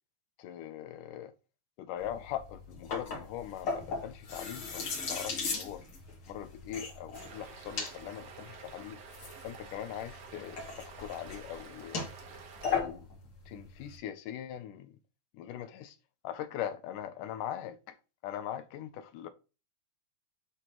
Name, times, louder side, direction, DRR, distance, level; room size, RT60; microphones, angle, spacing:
voice 1, 0.4-1.3 1.8-5.8 6.3-9.0 9.4-12.0 12.7-13.1 13.5-14.9 15.4-16.0 16.2-18.0 18.2-19.3, left 10 dB, 80° left, 2.0 m, -41 dB
sound 1, 2.0-14.0, left 5 dB, 45° left, 2.1 m, -38 dB
sound 2, 7.1-12.8, right 5 dB, 65° right, 1.6 m, -50 dB
9.8 x 4.3 x 3.0 m
omnidirectional pair, 4.2 m